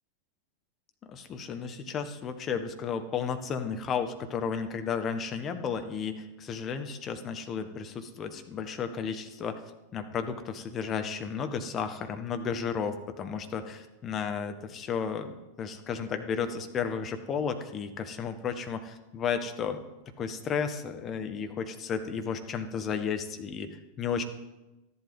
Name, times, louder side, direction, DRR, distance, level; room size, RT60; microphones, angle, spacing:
voice 1, 1.1-9.6 9.9-19.8 20.2-24.2, left 6 dB, 25° left, 7 dB, 1.3 m, -33 dB
13.0 x 11.0 x 5.4 m, 1.0 s
figure-of-eight pair, 90°, 0 cm